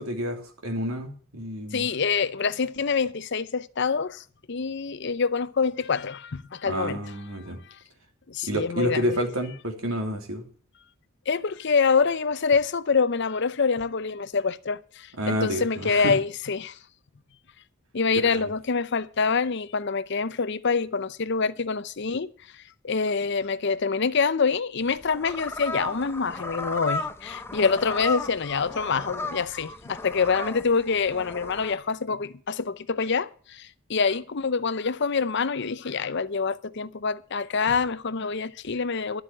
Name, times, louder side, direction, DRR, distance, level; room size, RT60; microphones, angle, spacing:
voice 1, 0.0-1.9 6.7-7.6 8.4-10.4 15.2-16.1 18.2-18.5, equal, 85° right, 3.1 m, -29 dB
voice 2, 1.7-7.0 8.3-9.2 11.3-16.8 17.9-22.3 22.8-39.2, left 5 dB, 55° left, 0.6 m, -26 dB
sound 1, 24.8-31.8, left 2 dB, 10° left, 0.8 m, -35 dB
12.0 x 8.1 x 7.4 m
head